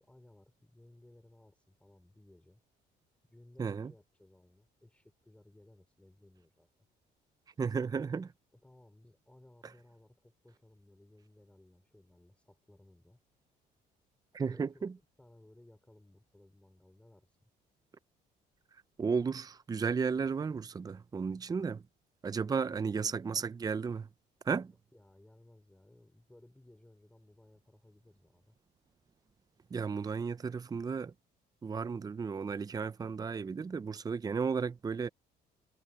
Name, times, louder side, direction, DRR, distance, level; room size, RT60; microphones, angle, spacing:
voice 1, 0.0-2.6 3.3-6.7 8.5-13.2 14.4-14.9 15.2-17.5 21.5-21.7 22.3-23.4 24.9-28.6, left 1 dB, 5° left, 5.1 m, -60 dB
voice 2, 3.6-3.9 7.6-8.3 14.3-14.9 19.0-21.8 22.2-24.1 24.5-24.7 29.7-31.1 31.6-35.1, right 5 dB, 20° right, 0.6 m, -34 dB
cardioid pair, 110°, 17 cm